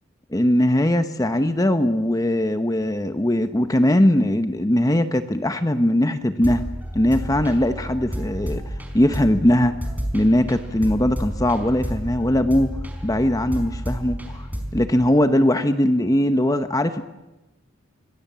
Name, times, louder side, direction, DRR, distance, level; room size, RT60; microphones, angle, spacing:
voice 1, 0.3-6.6 6.9-9.8 10.1-12.8 13.0-17.0, left 1 dB, 20° left, 9 dB, 0.9 m, -20 dB
sound 1, 6.4-14.8, equal, 10° right, 4.8 m, -31 dB
27.0 x 23.0 x 7.4 m, 1.0 s
head